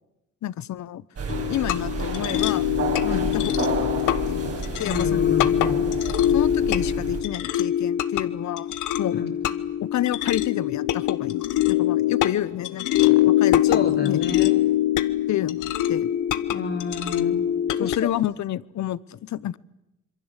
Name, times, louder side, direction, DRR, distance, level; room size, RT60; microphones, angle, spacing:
voice 1, 0.4-1.0 1.5-2.7 3.1-5.2 6.3-9.2 9.8-14.2 15.3-16.1 17.8-19.6, left 12 dB, 70° left, 19 dB, 1.0 m, -30 dB
sound 1, 1.2-7.2, right 5 dB, 50° right, 5.8 m, -31 dB
sound 2, 1.3-18.0, left 12 dB, 85° left, 1.3 m, -23 dB
voice 2, 3.0-3.4 4.8-5.9 9.2-9.4 13.7-14.5 16.5-17.4 17.8-18.1, left 5 dB, 45° left, -1 dB, 3.0 m, -30 dB
26.5 x 23.0 x 8.2 m, 0.90 s
cardioid pair, 90°, 30 cm